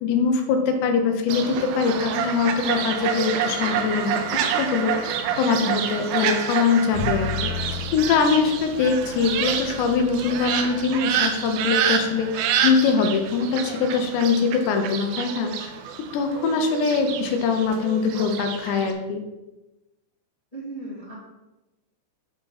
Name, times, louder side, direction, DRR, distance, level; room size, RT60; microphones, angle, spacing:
voice 1, 0.0-4.2 4.6-7.5 7.9-15.7 16.1-19.2, left 5 dB, 80° left, 5 dB, 2.8 m, -23 dB
Fowl, 1.3-18.9, right 8 dB, 80° right, 3.0 m, -28 dB
Bowed string instrument, 6.9-13.1, left 6 dB, 40° right, 1.8 m, -35 dB
voice 2, 20.5-21.1, right 2 dB, 15° left, -9 dB, 1.3 m, -36 dB
9.0 x 4.6 x 4.1 m, 1.0 s
omnidirectional pair, 5.3 m